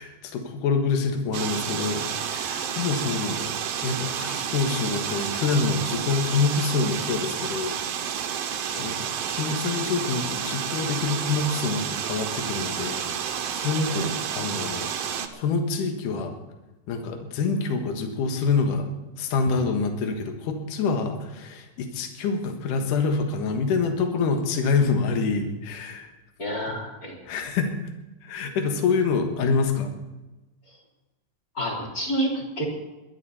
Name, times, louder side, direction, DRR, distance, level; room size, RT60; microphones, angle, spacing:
voice 1, 0.0-2.1 2.3-3.5 3.8-7.8 8.3-8.4 8.8-14.9 15.3-16.3 16.9-18.9 19.2-26.1 26.7-26.8 27.3-27.7 28.2-29.9, left 4 dB, 70° left, 5 dB, 2.9 m, -26 dB
sound 1, 1.3-15.3, right 8 dB, 65° right, 1.7 m, -30 dB
voice 2, 26.4-27.2 31.5-32.6, right 1 dB, 25° left, -1 dB, 3.9 m, -29 dB
22.0 x 11.0 x 4.2 m, 1.1 s
omnidirectional pair, 3.9 m